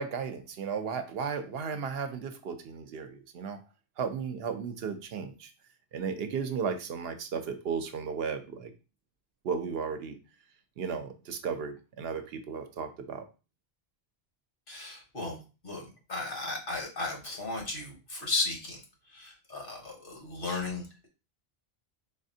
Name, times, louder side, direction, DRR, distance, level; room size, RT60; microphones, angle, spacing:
voice 1, 0.0-3.6 4.0-5.5 5.9-8.7 9.4-10.2 10.8-13.2, right 6 dB, 75° right, 7 dB, 0.8 m, -34 dB
voice 2, 14.7-15.4 15.6-18.8 19.1-21.1, left 3 dB, 60° left, 0 dB, 1.3 m, -35 dB
4.0 x 3.2 x 2.7 m, 0.32 s
omnidirectional pair, 1.0 m